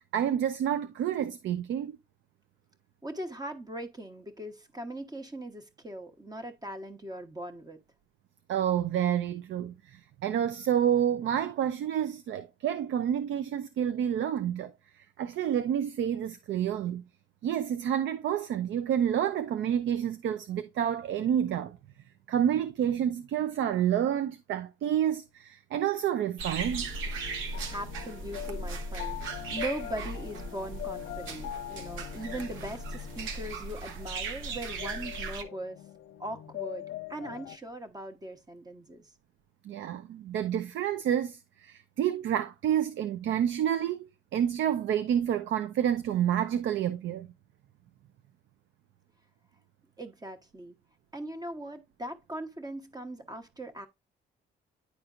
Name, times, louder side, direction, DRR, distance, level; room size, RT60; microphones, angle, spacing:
voice 1, 0.0-1.9 8.5-14.7 15.2-17.0 17.4-21.8 22.3-26.9 39.6-47.3, right 9 dB, 75° right, 0.6 m, -29 dB
voice 2, 3.0-7.8 27.7-35.8 36.2-39.0 50.0-50.8 51.1-53.9, right 1 dB, 20° right, 1.1 m, -40 dB
sound 1, 26.4-35.4, right 3 dB, 90° right, 1.0 m, -37 dB
sound 2, 26.8-37.6, left 14 dB, 75° left, 0.5 m, -43 dB
10.0 x 4.3 x 2.5 m
cardioid pair, 90°, 20 cm